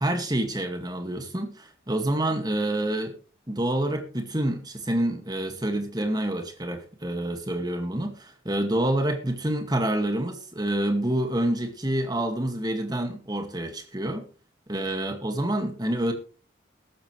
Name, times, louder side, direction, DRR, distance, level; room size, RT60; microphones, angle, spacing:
voice 1, 0.0-3.2 3.5-14.3 14.7-16.1, right 1 dB, 20° right, 2.2 m, -27 dB
15.0 x 13.5 x 3.4 m
head